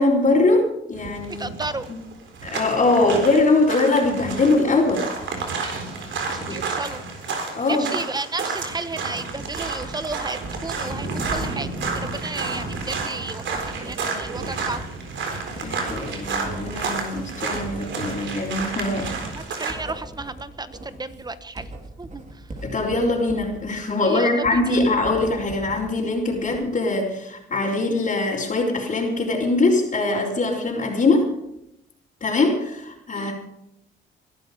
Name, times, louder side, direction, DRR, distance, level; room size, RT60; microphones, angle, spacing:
voice 1, 0.0-1.5 2.4-5.1 6.5-6.6 7.5-7.9 15.6-19.1 22.6-31.2 32.2-33.3, left 2 dB, 40° left, -7 dB, 4.3 m, -22 dB
sound 1, 0.9-19.7, right 4 dB, 70° right, 4.0 m, -31 dB
voice 2, 1.4-1.9 6.3-7.0 7.6-14.8 19.3-21.7 22.0-22.5 24.0-24.8 33.1-33.3, right 3 dB, 20° right, 12 dB, 1.2 m, -33 dB
Writing, 9.3-25.8 26.2-26.9, right 2 dB, 35° right, 4.3 m, -40 dB
21.0 x 12.5 x 5.2 m, 0.80 s
cardioid pair, 90°, 20 cm